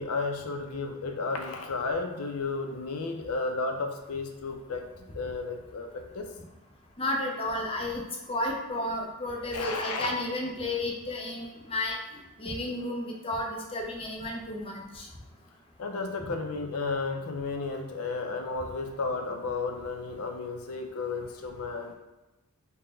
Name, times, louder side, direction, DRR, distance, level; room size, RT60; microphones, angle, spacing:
voice 1, 0.0-4.8 5.1-6.3 9.5-10.1 15.8-22.0, left 3 dB, 70° left, 4 dB, 0.5 m, -33 dB
voice 2, 7.0-8.0 8.3-12.0 12.4-15.0 16.2-16.3, left 1 dB, 25° left, 0 dB, 0.6 m, -32 dB
3.8 x 2.2 x 3.8 m, 1.1 s
head